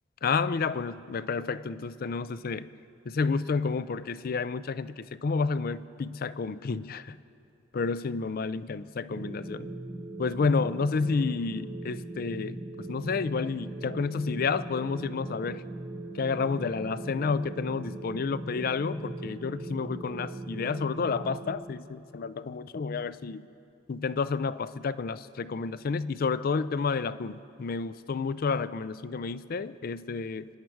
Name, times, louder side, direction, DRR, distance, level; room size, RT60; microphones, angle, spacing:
voice 1, 0.2-2.7 3.1-7.2 7.7-9.7 10.2-12.6 12.9-15.6 16.1-23.5 23.9-30.5, left 4 dB, 50° left, 15 dB, 0.4 m, -30 dB
sound 1, 9.1-21.6, right 2 dB, 20° right, 0.9 m, -39 dB
26.5 x 10.5 x 4.6 m, 2.5 s
head